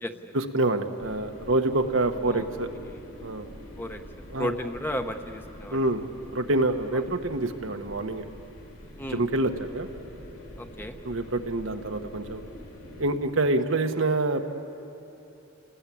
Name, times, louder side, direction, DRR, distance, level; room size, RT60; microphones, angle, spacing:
voice 1, 0.3-2.7 3.2-3.5 4.3-4.5 5.7-6.0 6.3-8.2 9.1-9.9 11.0-12.4 13.0-14.4, right 2 dB, 70° right, 5 dB, 1.4 m, -26 dB
sound 1, 1.0-13.1, equal, 70° left, 5.4 m, -45 dB
voice 2, 4.4-5.8 6.9-7.0 9.0-9.2 10.6-11.0, left 1 dB, 10° left, 6 dB, 1.0 m, -33 dB
29.0 x 20.0 x 8.6 m, 3.0 s
head